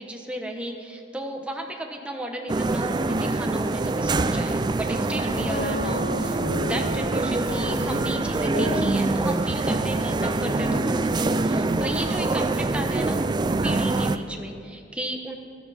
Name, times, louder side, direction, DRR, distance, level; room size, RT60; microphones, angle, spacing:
voice 1, 0.0-13.2 13.6-15.4, right 1 dB, 5° right, 2 dB, 1.1 m, -34 dB
sound 1, 2.5-14.2, right 2 dB, 25° right, 0.3 m, -25 dB
sound 2, 4.8-14.1, left 2 dB, 50° left, 1.1 m, -35 dB
13.0 x 13.0 x 4.3 m, 2.5 s
head